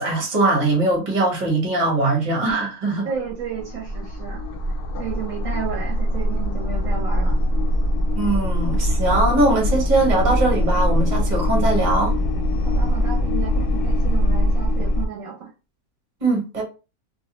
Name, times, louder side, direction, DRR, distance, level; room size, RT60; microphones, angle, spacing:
voice 1, 0.0-3.1 8.2-12.1 16.2-16.6, right 2 dB, 35° right, 0.9 m, -21 dB
voice 2, 3.0-4.5 5.0-7.4 12.6-15.5, right 7 dB, 70° right, 1.0 m, -32 dB
sound 1, 3.2-15.1, equal, 70° left, 0.8 m, -22 dB
2.6 x 2.0 x 2.9 m
omnidirectional pair, 1.6 m